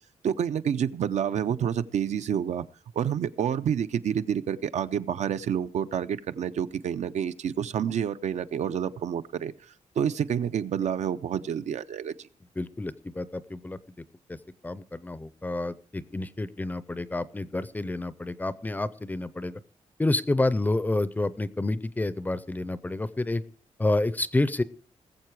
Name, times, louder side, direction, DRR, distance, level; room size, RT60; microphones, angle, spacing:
voice 1, 0.2-2.6 3.0-9.5 10.0-12.3, right 8 dB, 70° right, 12 dB, 0.6 m, -28 dB
voice 2, 12.6-13.8 14.3-14.4 14.6-19.6 20.0-23.4 23.8-24.6, left 2 dB, 15° left, 16 dB, 0.5 m, -29 dB
20.0 x 7.6 x 4.7 m, 0.43 s
wide cardioid pair, 170°, 12 cm